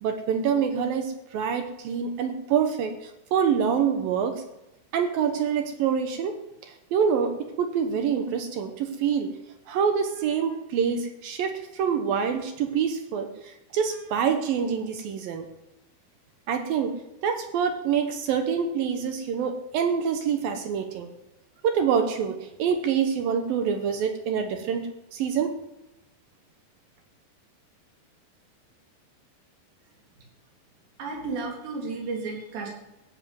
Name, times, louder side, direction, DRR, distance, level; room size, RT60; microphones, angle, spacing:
voice 1, 0.0-4.4 4.9-9.3 9.7-15.5 16.5-17.0 17.2-21.1 21.6-25.5, right 7 dB, 70° right, 6 dB, 2.6 m, -26 dB
voice 2, 31.0-32.7, right 3 dB, 90° right, -1 dB, 5.7 m, -33 dB
15.0 x 7.5 x 9.4 m, 0.96 s
omnidirectional pair, 4.8 m